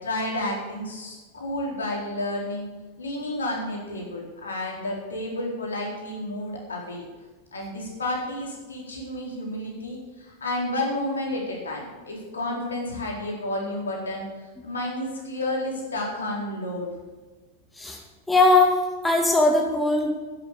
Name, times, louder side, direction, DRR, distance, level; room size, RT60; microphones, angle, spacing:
voice 1, 0.0-2.6 3.0-7.0 7.5-14.3 14.6-16.9, left 1 dB, 70° left, -1 dB, 4.0 m, -31 dB
voice 2, 18.3-18.8 19.0-20.1, left 2 dB, 5° left, 1 dB, 2.0 m, -19 dB
11.0 x 10.5 x 6.8 m, 1.3 s
figure-of-eight pair, 90°, 0 cm